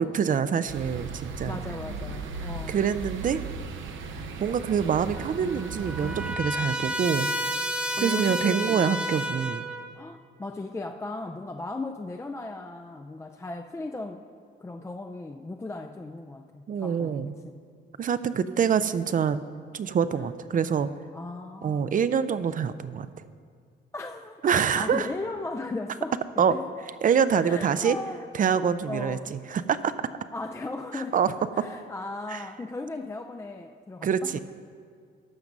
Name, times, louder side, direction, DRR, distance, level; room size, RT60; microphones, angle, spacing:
voice 1, 0.0-1.6 2.7-3.4 4.4-7.3 8.0-9.7 16.7-17.3 18.0-19.4 19.7-20.9 21.6-23.1 24.4-25.1 26.4-26.6 27.0-28.0 28.3-29.9 30.9-31.6 32.3-32.5 34.0-34.4, right 7 dB, 45° right, 13 dB, 0.5 m, -25 dB
sound 1, 0.7-6.4, right 4 dB, 75° right, 0.9 m, -36 dB
voice 2, 1.4-2.8 8.0-8.9 10.0-14.2 14.6-17.5 20.1-20.3 21.1-21.9 23.9-26.7 27.4-28.3 28.9-29.3 30.3-31.2 31.5-34.4, left 2 dB, 15° left, 5 dB, 0.4 m, -37 dB
Trumpet, 5.1-9.9, equal, 5° right, 0.8 m, -31 dB
14.0 x 5.9 x 5.3 m, 2.1 s
cardioid pair, 90°, 20 cm